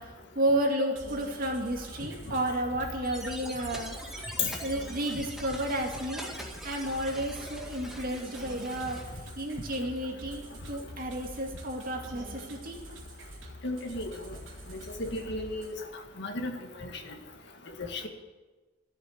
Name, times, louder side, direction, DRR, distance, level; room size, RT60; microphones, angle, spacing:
voice 1, 0.0-4.0 4.6-6.3 6.6-9.0 9.4-12.8, right 1 dB, 50° right, 1 dB, 2.3 m, -32 dB
sound 1, 1.0-15.7, equal, 80° right, 2.9 m, -46 dB
sound 2, 3.0-9.0, equal, ahead, 1.9 m, -43 dB
voice 2, 13.6-14.1 14.7-15.7 16.2-16.5 16.8-16.9 17.8-18.1, left 3 dB, 65° left, 4 dB, 1.9 m, -33 dB
13.5 x 7.9 x 9.7 m, 1.2 s
head